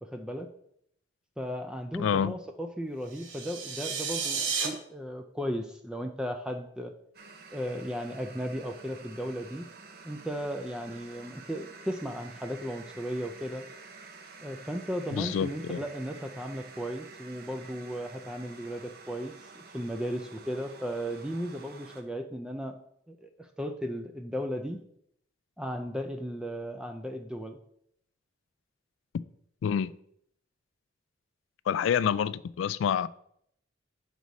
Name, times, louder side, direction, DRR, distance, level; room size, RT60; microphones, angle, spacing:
voice 1, 0.0-0.5 1.4-6.9 7.5-9.7 10.0-13.6 14.4-22.8 23.1-24.8 25.6-27.6, equal, 5° right, 0.4 m, -35 dB
voice 2, 2.0-2.3 15.1-15.8 29.6-29.9 31.7-33.1, left 8 dB, 80° left, 0.3 m, -27 dB
sound 1, 3.1-4.7, right 5 dB, 75° right, 1.1 m, -32 dB
sound 2, 7.1-22.0, right 4 dB, 50° right, 0.7 m, -50 dB
6.3 x 4.1 x 5.2 m
head